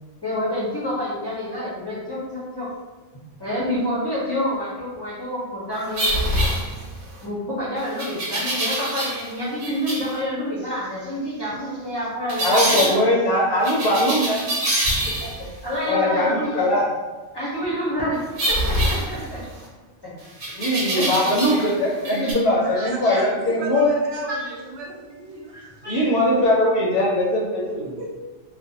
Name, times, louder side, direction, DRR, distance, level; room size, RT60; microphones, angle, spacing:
voice 1, 0.2-2.7 3.4-6.1 7.2-13.0 13.6-13.7 14.2-14.5 15.6-16.8 17.3-19.7 20.0-20.1 20.5-22.5 22.7-23.3 24.1-24.6 25.5-26.1, equal, 30° left, -9 dB, 0.5 m, -29 dB
sound 1, 5.9-7.1 8.0-9.3 9.6-10.1 12.3-12.9 13.6-15.5 18.4-19.6 20.4-21.7 22.0-22.3, right 1 dB, 85° right, 1.1 m, -25 dB
voice 2, 12.4-14.5 15.9-16.9 20.6-23.9 25.9-28.0, left 1 dB, 65° left, -5 dB, 0.8 m, -20 dB
voice 3, 22.6-25.5 25.9-26.0 28.0-28.2, right 2 dB, 70° right, -1 dB, 0.8 m, -36 dB
2.4 x 2.1 x 2.7 m, 1.2 s
omnidirectional pair, 1.2 m